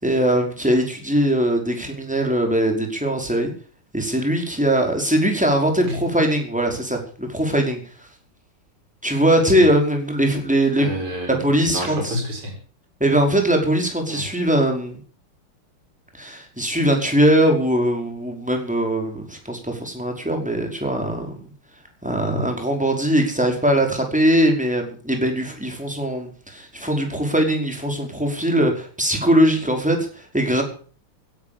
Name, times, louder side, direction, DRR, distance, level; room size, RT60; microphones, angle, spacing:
voice 1, 0.0-3.5 3.9-7.8 9.0-10.9 11.3-12.2 13.0-15.0 16.1-21.4 22.0-30.6, right 1 dB, 5° right, 2 dB, 5.0 m, -21 dB
voice 2, 10.8-12.5 14.1-14.3 22.2-22.4, equal, 85° right, 1 dB, 5.6 m, -29 dB
16.5 x 11.0 x 7.1 m, 0.43 s
omnidirectional pair, 2.4 m